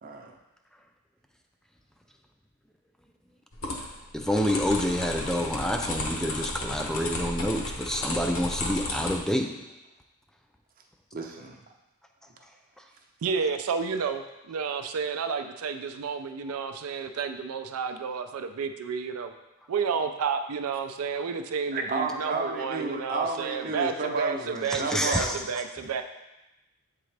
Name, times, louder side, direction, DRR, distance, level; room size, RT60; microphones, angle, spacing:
voice 1, 0.0-0.3 11.1-11.6 21.7-25.3, right 3 dB, 40° right, 2 dB, 0.6 m, -31 dB
sound 1, 3.5-9.2, left 2 dB, 65° left, 0.9 m, -33 dB
voice 2, 4.1-9.6 24.7-25.4, equal, ahead, 4 dB, 0.3 m, -28 dB
voice 3, 13.2-19.3 19.7-26.0, right 6 dB, 85° right, 7 dB, 0.4 m, -31 dB
7.8 x 3.7 x 3.3 m, 0.96 s
head